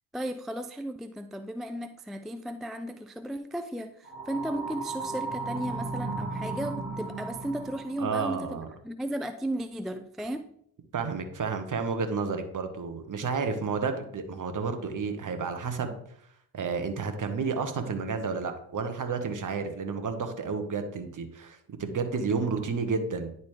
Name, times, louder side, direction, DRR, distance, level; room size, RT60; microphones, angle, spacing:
voice 1, 0.1-10.5 22.2-22.5, right 1 dB, ahead, 8 dB, 0.3 m, -35 dB
sound 1, 4.0-8.0, right 3 dB, 20° right, 2.2 m, -35 dB
voice 2, 8.0-8.7 10.9-16.0 16.5-23.3, right 5 dB, 40° right, 7 dB, 1.4 m, -31 dB
10.5 x 4.2 x 3.3 m, 0.69 s
hypercardioid pair, 60°, 49 cm